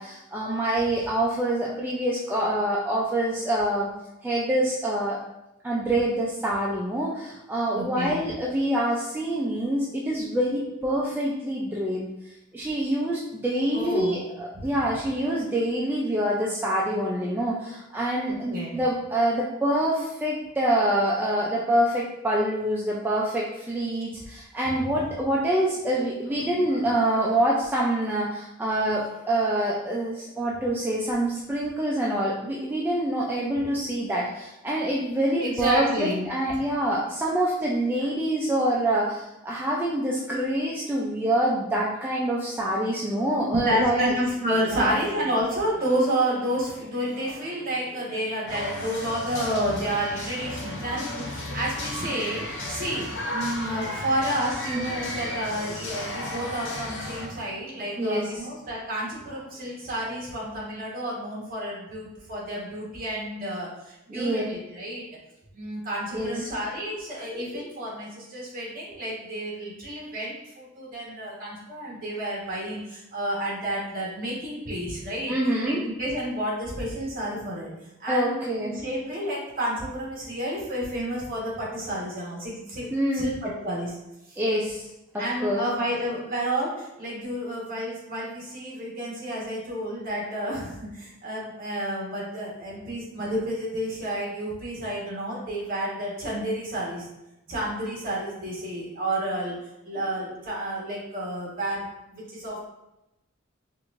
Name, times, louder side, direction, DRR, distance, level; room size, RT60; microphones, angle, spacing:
voice 1, 0.0-3.9 4.2-5.2 5.6-12.1 12.5-44.1 44.6-44.9 58.0-58.3 64.1-64.4 66.1-66.5 75.3-75.8 78.1-78.8 82.9-83.3 84.4-84.8 85.4-85.6, right 1 dB, 10° right, -5 dB, 0.3 m, -26 dB
voice 2, 7.7-8.2 13.7-14.2 14.5-14.6 18.2-18.8 26.3-27.2 35.4-36.3 43.5-65.0 65.5-75.3 75.6-77.7 78.0-82.9 83.1-84.0 84.3-84.4 85.2-97.1 97.5-99.6 99.8-102.6, right 1 dB, 45° right, -5 dB, 1.3 m, -30 dB
sound 1, 48.5-57.3, left 1 dB, 60° left, 0.7 m, -34 dB
4.5 x 2.5 x 2.5 m, 0.92 s
head